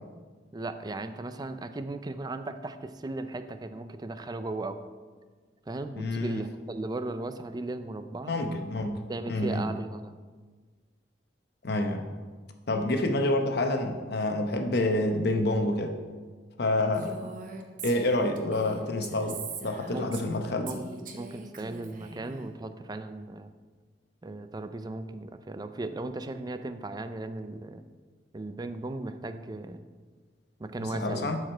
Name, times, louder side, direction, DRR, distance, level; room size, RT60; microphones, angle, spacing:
voice 1, 0.5-4.8 5.7-8.3 9.1-10.1 17.2-17.3 19.9-20.2 20.6-20.8 21.2-23.5 24.2-27.8 28.3-29.9 30.6-31.4, right 2 dB, 20° right, 10 dB, 0.4 m, -36 dB
voice 2, 6.0-6.4 8.3-9.0 9.3-9.6 11.6-12.0 12.7-16.0 16.6-17.2 17.8-20.7 30.8-31.4, left 2 dB, 60° left, 5 dB, 0.9 m, -28 dB
Female speech woman speaking, 16.9-20.4 20.7-22.5, right 4 dB, 50° right, 0.9 m, -42 dB
12.0 x 4.9 x 4.4 m, 1.5 s
head